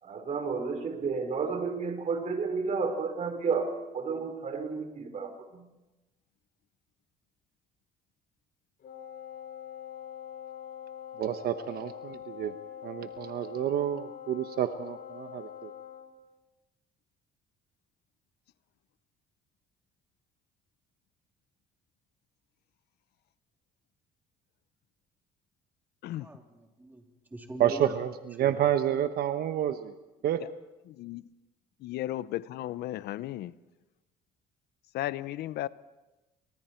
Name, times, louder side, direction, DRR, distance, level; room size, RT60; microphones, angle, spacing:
voice 1, 0.0-5.7, right 5 dB, 45° right, 6 dB, 4.2 m, -32 dB
Wind instrument woodwind instrument, 8.8-16.1, left 10 dB, 60° left, 5.0 m, -44 dB
voice 2, 11.2-12.5 12.8-15.7 27.6-29.9 30.2-30.4, right 11 dB, 65° right, 9 dB, 1.1 m, -29 dB
voice 3, 26.2-27.0 27.3-27.9 28.4-28.7, right 1 dB, 10° right, 2 dB, 3.3 m, -42 dB
voice 4, 30.9-31.2 31.8-33.5 34.9-35.7, left 14 dB, 75° left, 17 dB, 0.7 m, -35 dB
28.5 x 25.0 x 4.5 m, 1.1 s
cardioid pair, 110°, 17 cm